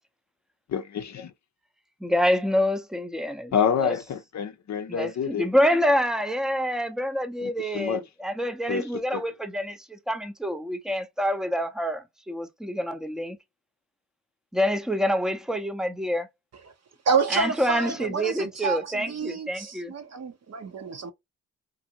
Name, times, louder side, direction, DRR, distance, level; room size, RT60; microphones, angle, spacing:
voice 1, 0.7-1.3 3.5-5.4 7.4-8.0 8.7-9.2, left 7 dB, 50° left, 0.6 m, -28 dB
voice 2, 2.0-3.5 3.8-4.0 4.9-13.4 14.5-16.3 17.3-19.9, equal, ahead, 0.6 m, -27 dB
voice 3, 17.1-21.1, right 5 dB, 45° right, 0.8 m, -28 dB
2.6 x 2.5 x 2.7 m
supercardioid pair, 55°, 36 cm